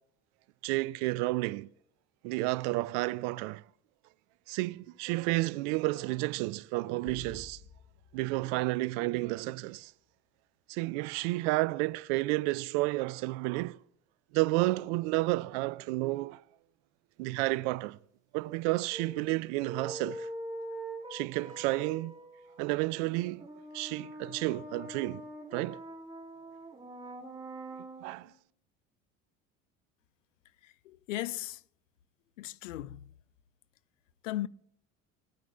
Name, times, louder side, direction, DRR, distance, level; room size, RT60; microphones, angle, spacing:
voice 1, 0.6-1.7 2.2-3.6 4.5-7.6 8.1-9.9 10.7-13.8 14.3-16.4 17.2-18.0 18.3-20.3 21.1-22.1 22.6-23.5 23.7-25.2 25.5-25.8 28.0-28.3, right 21 dB, 65° right, 0.5 m, -31 dB
sound 1, 7.1-9.5, left 5 dB, 65° left, 1.3 m, -53 dB
sound 2, 18.9-28.3, right 1 dB, 10° right, 3.4 m, -44 dB
voice 2, 30.6-31.6 32.4-33.1 34.2-34.5, left 15 dB, 85° left, 0.5 m, -37 dB
18.5 x 9.2 x 2.6 m
hypercardioid pair, 65°, 37 cm